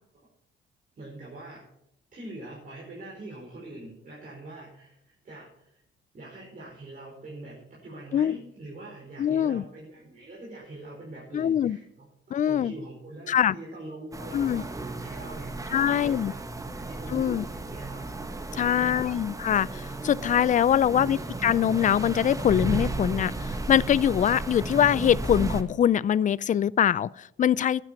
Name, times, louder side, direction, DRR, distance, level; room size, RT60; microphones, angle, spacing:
voice 1, 1.0-1.6 2.1-5.8 6.1-7.6 7.8-19.0 20.8-21.4, right 2 dB, 45° right, 4.9 m, -43 dB
voice 2, 9.2-9.6 11.3-11.8 12.3-12.7 13.3-13.5 14.3-14.6 15.7-16.3 17.1-17.4 18.5-27.8, left 9 dB, 40° left, 0.4 m, -23 dB
sound 1, 14.1-25.6, right 2 dB, 15° right, 1.2 m, -34 dB
12.5 x 9.0 x 5.8 m
cardioid pair, 90°, 20 cm